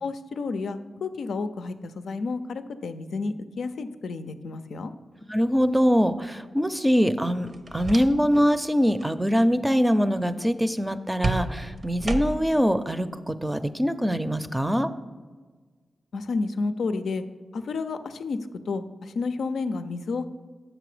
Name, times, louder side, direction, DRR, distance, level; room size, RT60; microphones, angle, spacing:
voice 1, 0.0-4.9 16.1-17.2 17.5-18.4 18.7-20.2, left 4 dB, 85° left, 10 dB, 0.4 m, -31 dB
voice 2, 5.3-14.9, equal, 10° right, 11 dB, 0.5 m, -23 dB
sound 1, 7.5-8.5 8.8-9.1 11.2-12.6, right 3 dB, 60° right, 0.7 m, -31 dB
7.6 x 6.1 x 4.9 m, 1.4 s
cardioid pair, 50°, 0 cm